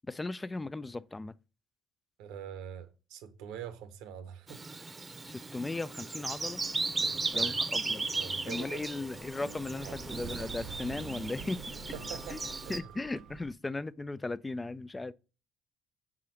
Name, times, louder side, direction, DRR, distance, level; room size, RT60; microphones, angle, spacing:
voice 1, 0.1-1.4 5.2-6.6 7.3-8.1 8.4-11.6 12.3-12.4 12.7-15.1, left 2 dB, 20° left, 0.3 m, -37 dB
voice 2, 2.2-4.6 7.0-7.6 8.1-9.1 9.6-10.0 11.9-12.9, right 8 dB, 85° right, 0.9 m, -45 dB
Bird vocalization bird call bird song, 4.5-12.8, right 3 dB, 25° right, 0.7 m, -36 dB
sound 1, 6.3-12.6, left 5 dB, 45° left, 0.9 m, -52 dB
Sliding door, 8.9-13.5, right 8 dB, 60° right, 0.4 m, -46 dB
4.9 x 3.7 x 5.7 m
supercardioid pair, 85°, 0 cm